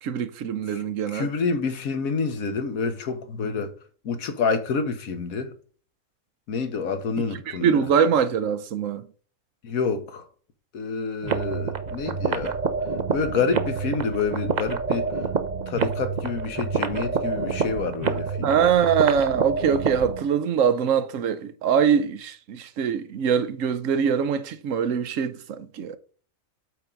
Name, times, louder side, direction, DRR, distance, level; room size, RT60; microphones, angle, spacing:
voice 1, 0.0-1.3 7.5-9.1 18.4-26.0, right 7 dB, 70° right, 1.0 m, -23 dB
voice 2, 0.7-3.7 4.0-5.5 6.5-7.9 9.6-10.2 10.7-12.6 13.1-15.2 15.7-18.7, left 4 dB, 85° left, 1.5 m, -28 dB
sound 1, 11.2-20.3, right 5 dB, 45° right, 0.6 m, -27 dB
8.0 x 4.5 x 3.8 m
omnidirectional pair, 1.4 m